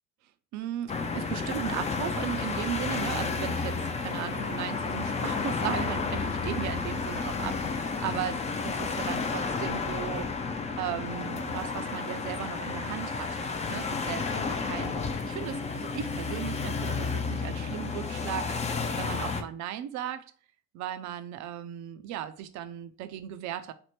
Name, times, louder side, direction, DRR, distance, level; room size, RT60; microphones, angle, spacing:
voice 1, 0.5-10.3 10.8-20.3 20.7-23.7, right 11 dB, 50° right, 0.4 m, -37 dB
sound 1, 0.9-19.4, left 4 dB, 20° left, 0.4 m, -31 dB
3.4 x 2.0 x 3.0 m
figure-of-eight pair, 45°, 39 cm